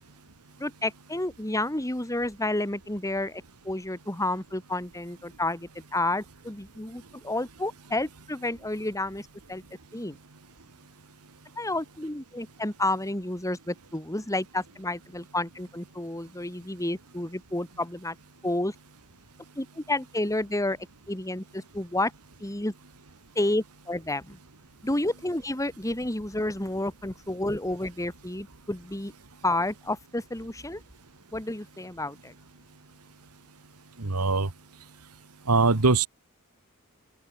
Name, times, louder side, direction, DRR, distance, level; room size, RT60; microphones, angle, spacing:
voice 1, 0.6-9.6 9.9-10.2 11.6-18.2 18.4-18.7 19.6-20.8 21.1-22.1 22.4-22.7 23.3-24.4 24.8-29.1 29.4-30.8 31.3-32.3, left 1 dB, 15° left, 2.8 m, -30 dB
voice 2, 34.0-34.5 35.5-36.1, right 3 dB, 85° right, 1.6 m, -22 dB
open air
head